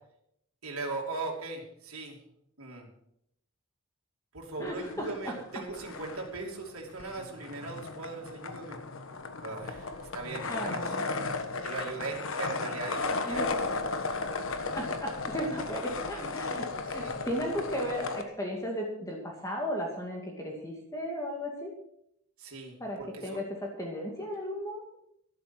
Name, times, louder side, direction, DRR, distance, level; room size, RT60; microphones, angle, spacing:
voice 1, 0.6-2.2 2.6-2.9 4.3-8.8 9.4-10.8 11.6-13.4 16.8-17.1 22.4-23.4, right 3 dB, 75° right, -1 dB, 2.9 m, -39 dB
voice 2, 4.6-5.6 10.5-11.1 13.2-13.6 14.7-21.7 22.8-24.8, equal, 15° left, 0 dB, 2.2 m, -35 dB
sound 1, 4.7-5.4 5.7-18.2, left 3 dB, 65° left, 1.3 m, -35 dB
12.5 x 11.5 x 6.0 m, 0.75 s
head